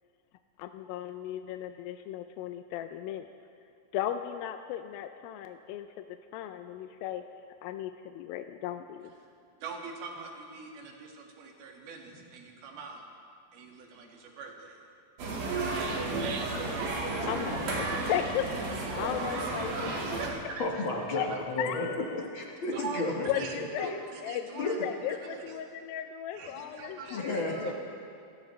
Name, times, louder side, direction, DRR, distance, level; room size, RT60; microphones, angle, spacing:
voice 1, 0.6-3.3 3.9-5.9 6.3-7.2 7.6-9.1 17.3-18.7 18.9-20.3 21.2-21.3 21.6-22.2 23.3-27.7, left 11 dB, 80° left, 7 dB, 2.3 m, -36 dB
voice 2, 9.6-13.0 13.5-14.8 15.3-15.6 16.2-17.5 18.8-19.2 20.1-20.7 21.3-21.5 22.7-23.1 23.3-24.8 25.1-25.6 26.3-27.7, right 4 dB, 90° right, 0 dB, 3.7 m, -43 dB
sound 1, 15.2-20.3, right 3 dB, 65° right, 3.4 m, -32 dB
voice 3, 20.6-21.9 22.3-23.9 24.6-24.7 27.1-27.7, left 2 dB, 60° left, -1 dB, 1.3 m, -32 dB
27.0 x 15.5 x 3.2 m, 2.4 s
omnidirectional pair, 4.3 m